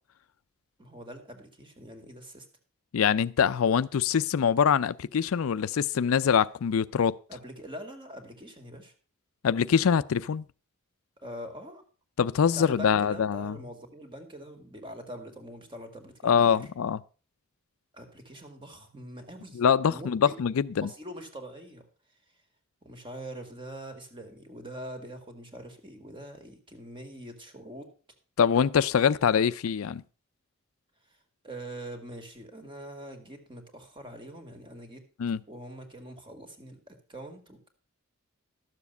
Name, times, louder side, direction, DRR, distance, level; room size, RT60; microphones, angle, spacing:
voice 1, 0.8-2.5 7.3-8.9 11.2-11.8 12.4-16.6 17.9-19.6 19.9-20.3 20.8-21.9 22.8-27.9 31.4-35.0 35.5-37.7, right 1 dB, 25° right, 2.0 m, -43 dB
voice 2, 2.9-7.2 9.4-10.4 12.2-13.6 16.2-17.0 19.5-20.9 28.4-30.0 35.2-35.4, left 7 dB, 80° left, 0.4 m, -24 dB
12.5 x 7.2 x 5.4 m
head